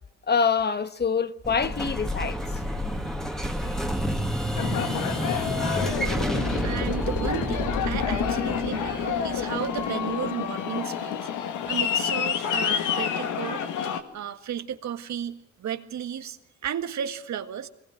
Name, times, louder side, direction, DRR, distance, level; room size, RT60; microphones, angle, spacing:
voice 1, 0.3-2.4, left 5 dB, 35° left, 1.2 m, -25 dB
Explosion, 1.4-10.1, equal, ahead, 2.4 m, -29 dB
Aircraft, 4.6-14.0, left 8 dB, 85° left, 2.0 m, -28 dB
voice 2, 6.6-13.8 14.1-16.4 16.6-17.7, right 9 dB, 65° right, 1.8 m, -34 dB
23.5 x 19.5 x 7.4 m
cardioid pair, 90°, 30 cm